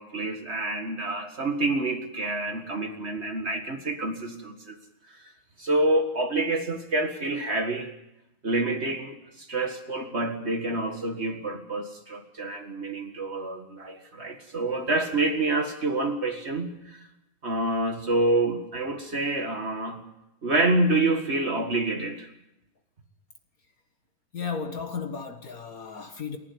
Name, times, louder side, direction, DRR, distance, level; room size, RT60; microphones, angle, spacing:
voice 1, 0.0-4.8 5.1-5.3 5.6-7.9 8.4-17.1 17.4-20.0 20.4-22.3, right 2 dB, 40° right, 4 dB, 0.9 m, -27 dB
voice 2, 24.3-26.4, left 5 dB, 65° left, 6 dB, 0.8 m, -34 dB
28.5 x 11.5 x 9.6 m, 0.91 s
omnidirectional pair, 4.1 m